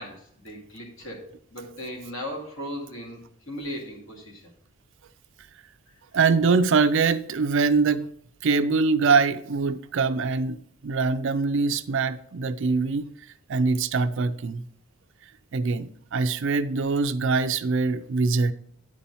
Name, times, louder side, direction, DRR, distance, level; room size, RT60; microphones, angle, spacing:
voice 1, 0.0-4.5 10.9-11.1, equal, 60° left, 2.3 m, -37 dB
voice 2, 6.1-8.1 8.4-13.1 13.5-14.7 15.5-18.5, right 4 dB, 55° right, 0.4 m, -23 dB
9.7 x 4.3 x 5.4 m
head